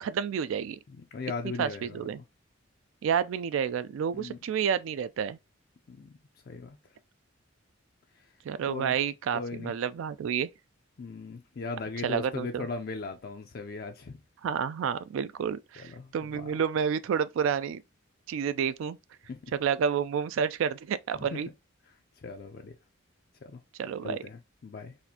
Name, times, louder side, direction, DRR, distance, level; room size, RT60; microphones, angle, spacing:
voice 1, 0.0-0.8 1.4-2.2 3.0-5.4 8.5-10.5 12.0-12.7 14.4-17.8 18.3-19.0 19.5-21.5 23.8-24.2, right 7 dB, 75° right, 0.3 m, -30 dB
voice 2, 0.9-2.1 4.1-4.4 5.9-6.1 6.5-6.8 8.1-8.3 8.7-8.9 9.3-9.7 11.0-14.2 15.8-16.5 19.3-19.5 21.3-21.4 21.9-22.7 23.4-23.6 24.0-25.0, left 4 dB, 50° left, 0.4 m, -39 dB
4.1 x 2.5 x 2.7 m
head